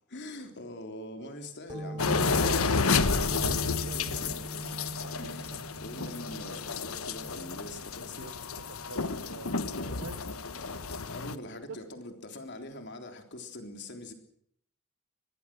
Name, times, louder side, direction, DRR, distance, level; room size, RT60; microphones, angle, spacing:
voice 1, 0.1-2.6 3.9-4.4 5.1-5.5 5.8-8.3 9.7-10.1 10.6-14.1, left 1 dB, 55° left, 3.7 m, -43 dB
sound 1, 1.7-9.0, right 2 dB, 20° right, 5.3 m, -41 dB
sound 2, 2.0-11.3, left 4 dB, 85° left, 1.3 m, -31 dB
voice 2, 2.9-4.3 5.2-5.6 6.1-6.2 8.2-9.5 10.0-10.2 11.7-11.8, right 4 dB, 80° right, 1.1 m, -47 dB
23.5 x 21.0 x 6.3 m
head